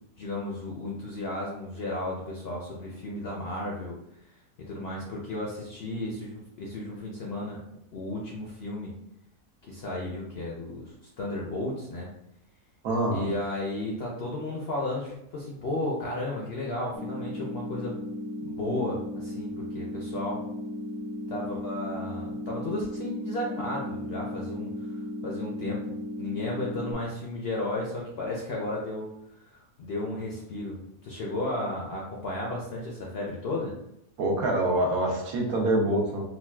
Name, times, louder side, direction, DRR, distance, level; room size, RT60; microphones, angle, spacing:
voice 1, 0.2-4.0 4.6-7.6 7.9-8.9 9.6-12.1 13.1-17.9 18.4-20.4 21.3-25.8 26.2-33.7, left 2 dB, 65° left, -2 dB, 0.6 m, -34 dB
voice 2, 12.8-13.3 34.2-36.2, right 1 dB, 75° right, 0 dB, 1.2 m, -25 dB
sound 1, 16.9-26.9, left 1 dB, 40° right, 1.0 m, -36 dB
3.9 x 2.3 x 2.2 m, 0.79 s
omnidirectional pair, 1.6 m